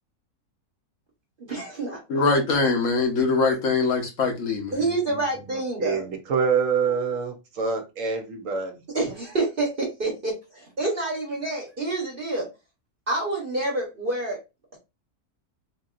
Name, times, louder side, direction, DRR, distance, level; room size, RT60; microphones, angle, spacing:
voice 1, 1.4-2.0 4.7-6.1 8.9-10.3 10.8-12.5 13.1-14.4, right 2 dB, 40° right, 1.2 m, -27 dB
voice 2, 2.1-4.9, left 4 dB, 55° left, 1.3 m, -23 dB
voice 3, 5.5-8.8, right 5 dB, 60° right, 1.1 m, -26 dB
4.4 x 2.7 x 2.4 m
omnidirectional pair, 1.6 m